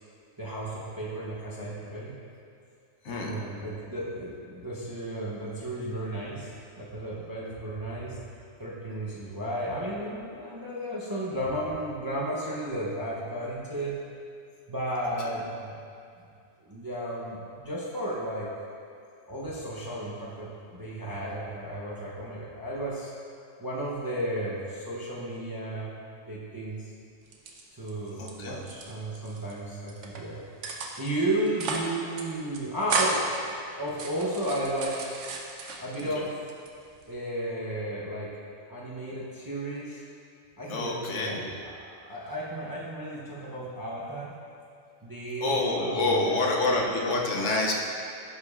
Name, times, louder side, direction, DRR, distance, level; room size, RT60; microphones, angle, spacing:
voice 1, 0.4-2.1 3.1-8.2 8.6-14.0 14.7-15.8 16.2-16.3 16.6-18.5 19.3-23.1 23.6-26.0 26.3-26.9 27.7-30.4 31.0-33.3 33.8-35.2 35.8-36.4 37.1-38.4 38.7-40.0 40.6-41.7 42.0-44.4 45.0-47.2, right 1 dB, 20° right, -7 dB, 0.6 m, -34 dB
voice 2, 3.0-3.4 28.2-28.6 36.2-36.3 40.7-41.5 45.4-47.7, left 2 dB, 70° left, -1 dB, 1.0 m, -27 dB
sound 1, 27.3-28.3 28.6-29.5 29.9-30.2 30.6-31.1 31.5-32.2 32.5-33.4 33.9-36.1 36.5-37.1, right 3 dB, 70° right, 1.0 m, -33 dB
11.0 x 5.1 x 2.4 m, 2.5 s
omnidirectional pair, 1.3 m